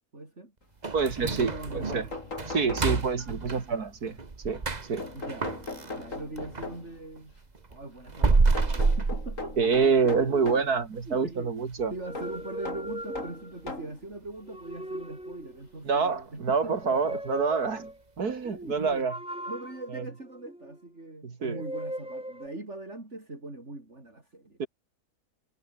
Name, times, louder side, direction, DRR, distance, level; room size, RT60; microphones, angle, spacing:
voice 1, 0.1-0.5 1.2-2.1 5.1-5.5 6.0-7.3 7.7-10.6 11.1-11.6 11.9-17.2 18.3-19.1 19.5-24.6, right 2 dB, 45° right, 5.9 m, -41 dB
sound 1, 0.8-6.8 7.1-10.0 10.3-10.4 10.9-11.0 11.6-11.9 12.2-12.3 12.9-13.0, right 3 dB, 30° right, 1.6 m, -29 dB
voice 2, 0.9-2.0 2.5-4.2 4.4-4.6 4.9-5.1 9.6-11.9 15.8-17.9 18.2-19.1 19.9-20.0 21.2-21.6 24.6-24.7, right 5 dB, 80° right, 2.7 m, -27 dB
sound 2, 1.7-3.5 5.0-7.1 8.5-10.8 12.1-14.0 14.9-15.0 16.3-16.4 16.7-16.8, left 3 dB, 55° left, 4.1 m, -39 dB
sound 3, 11.9-13.7 14.4-15.7 16.6-18.0 19.1-20.9 21.5-22.5, right 1 dB, 5° right, 1.3 m, -39 dB
omnidirectional pair, 1.6 m